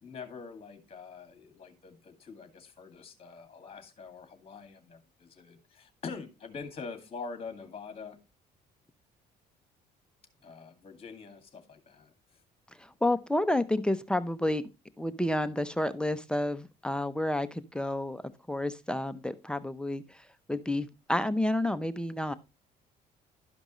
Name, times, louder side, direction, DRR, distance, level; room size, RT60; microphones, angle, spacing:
voice 1, 0.0-8.2 10.4-12.4, left 5 dB, 35° left, 2.1 m, -45 dB
voice 2, 12.8-14.6 15.0-18.2 18.5-22.3, left 1 dB, 5° left, 0.6 m, -30 dB
12.5 x 5.2 x 3.0 m
cardioid pair, 110°, 17 cm